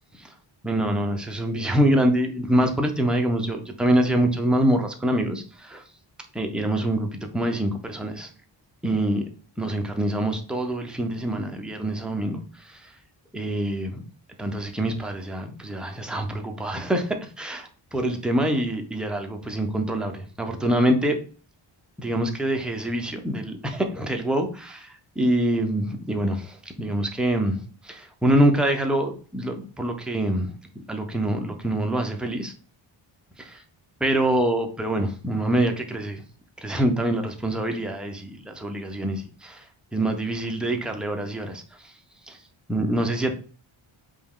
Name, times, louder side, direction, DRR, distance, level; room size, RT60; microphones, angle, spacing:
voice 1, 0.6-5.8 6.3-8.3 8.8-9.2 9.6-12.4 13.3-14.0 14.4-21.2 22.0-24.9 25.2-27.6 27.8-30.5 30.9-32.5 33.4-33.6 34.0-36.2 36.6-39.6 39.9-41.6 42.3-42.4 42.7-43.3, right 1 dB, ahead, 4 dB, 0.4 m, -25 dB
5.1 x 2.3 x 3.5 m, 0.40 s
wide cardioid pair, 180°, 49 cm